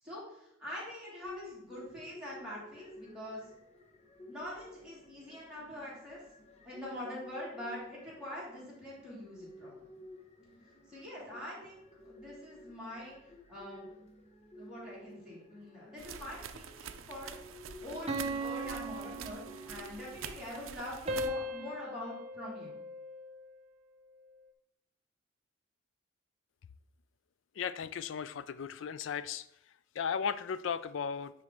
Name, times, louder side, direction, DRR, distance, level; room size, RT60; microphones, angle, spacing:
voice 1, 0.0-3.4 4.3-6.2 6.6-9.7 10.9-11.8 12.0-13.2 13.5-13.9 14.5-17.3 17.8-22.7, left 1 dB, 5° right, -8 dB, 2.9 m, -44 dB
sound 1, 1.2-21.0, left 1 dB, 35° left, 0.8 m, -53 dB
sound 2, 16.0-21.3, right 7 dB, 85° right, 0.5 m, -46 dB
sound 3, 18.1-20.0 21.1-23.5, right 1 dB, 30° right, 0.6 m, -38 dB
voice 2, 27.6-29.5 29.9-31.3, left 7 dB, 65° left, 15 dB, 0.4 m, -36 dB
9.5 x 3.2 x 4.7 m, 0.80 s
head